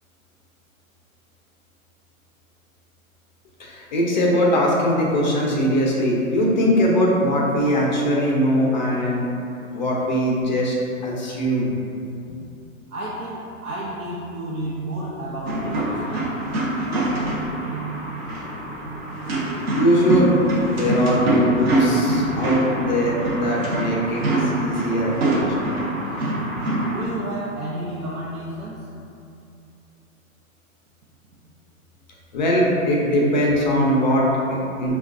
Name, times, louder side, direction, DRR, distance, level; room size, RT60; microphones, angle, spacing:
voice 1, 3.6-9.3 9.7-10.7 11.0-11.7 19.7-25.8 26.5-26.6 32.3-35.0, equal, 35° left, -3 dB, 0.4 m, -21 dB
voice 2, 12.9-16.3 26.9-28.9, right 1 dB, 90° right, -7 dB, 0.7 m, -31 dB
sound 1, 15.5-27.1, right 1 dB, 50° right, 0.6 m, -24 dB
4.3 x 2.3 x 2.4 m, 2.7 s
hypercardioid pair, 145°, 42 cm